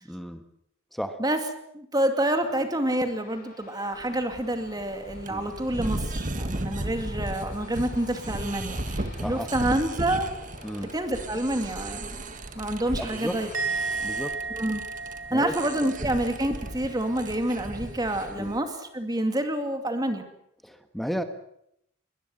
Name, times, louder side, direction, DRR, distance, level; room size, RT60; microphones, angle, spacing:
voice 1, 0.0-0.4 0.9-1.2 5.3-5.4 9.2-9.5 10.6-10.9 13.0-13.4 14.0-14.4 15.3-15.5 16.0-16.1 18.4-18.5 20.6-21.2, equal, ahead, 8 dB, 1.4 m, -33 dB
voice 2, 1.7-10.3 10.9-12.1 12.6-13.5 14.5-14.8 15.3-20.2, right 1 dB, 20° right, 6 dB, 2.4 m, -28 dB
Aircraft, 2.2-14.3, left 2 dB, 45° left, 5.4 m, -50 dB
sound 1, 4.0-18.6, right 1 dB, 40° right, 1.7 m, -36 dB
Musical instrument, 13.5-16.9 17.2-17.6, right 4 dB, 85° right, 3.9 m, -34 dB
22.5 x 20.5 x 7.9 m, 0.74 s
head